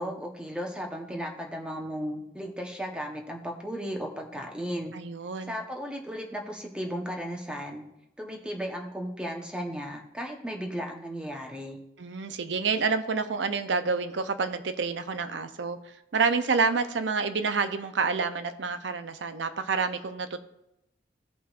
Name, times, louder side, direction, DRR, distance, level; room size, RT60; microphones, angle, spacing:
voice 1, 0.0-4.9 5.5-7.8 8.2-11.8, equal, 5° right, 1 dB, 1.0 m, -35 dB
voice 2, 4.9-5.6 12.0-15.8 16.1-20.4, right 4 dB, 85° right, 9 dB, 0.6 m, -28 dB
16.0 x 5.6 x 2.5 m, 0.86 s
head